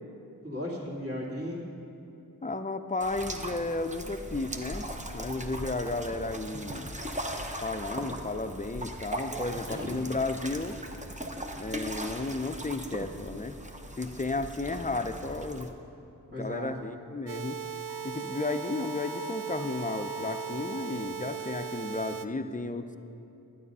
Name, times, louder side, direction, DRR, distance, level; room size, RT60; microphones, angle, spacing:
voice 1, 0.4-1.6 9.7-10.0 16.3-16.7, left 1 dB, 35° right, -4 dB, 2.3 m, -35 dB
voice 2, 2.4-6.9 7.6-10.8 11.6-13.6 14.0-15.7 16.3-17.6 18.0-23.0, left 2 dB, 20° left, 8 dB, 0.6 m, -33 dB
sound 1, 3.0-15.7, right 1 dB, 20° right, 0.8 m, -39 dB
sound 2, 17.3-22.3, right 8 dB, 60° right, 0.5 m, -38 dB
Wind instrument woodwind instrument, 17.9-21.7, left 1 dB, 60° left, 0.7 m, -46 dB
11.0 x 9.3 x 5.5 m, 2.8 s
wide cardioid pair, 45°, 38 cm